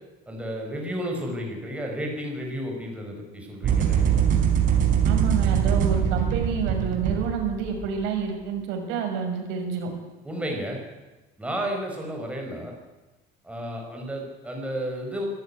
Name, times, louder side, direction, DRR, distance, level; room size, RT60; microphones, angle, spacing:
voice 1, 0.3-4.2 10.2-10.8 11.4-12.7 13.4-15.2, equal, 5° right, 1 dB, 5.0 m, -32 dB
sound 1, 3.6-7.9, right 8 dB, 45° right, 4.2 m, -22 dB
voice 2, 5.0-9.9, right 6 dB, 85° right, 3 dB, 6.3 m, -28 dB
24.5 x 14.5 x 9.8 m, 1.1 s
cardioid pair, 160°, 18 cm